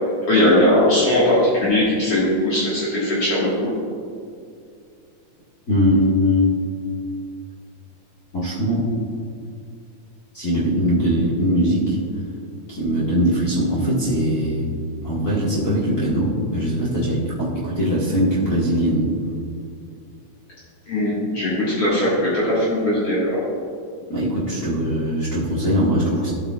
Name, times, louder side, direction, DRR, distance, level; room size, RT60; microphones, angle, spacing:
voice 1, 0.3-3.7 20.9-23.4, left 1 dB, 55° left, -9 dB, 2.7 m, -19 dB
voice 2, 5.7-6.5 8.3-8.9 10.3-12.0 12.7-14.7 15.0-19.1 24.1-26.3, equal, 35° left, -8 dB, 1.6 m, -21 dB
15.0 x 8.5 x 2.4 m, 2.3 s
omnidirectional pair, 3.5 m